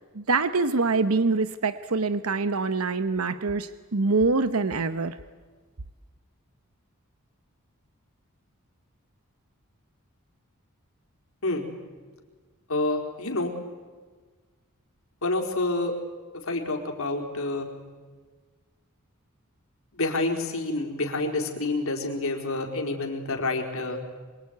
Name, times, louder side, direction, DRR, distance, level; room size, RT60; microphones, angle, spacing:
voice 1, 0.2-5.1, right 3 dB, 75° right, 12 dB, 1.0 m, -25 dB
voice 2, 12.7-13.5 15.2-15.9 16.4-17.7 19.9-24.0, left 2 dB, 70° left, 2 dB, 4.4 m, -28 dB
27.0 x 23.0 x 9.5 m, 1.4 s
head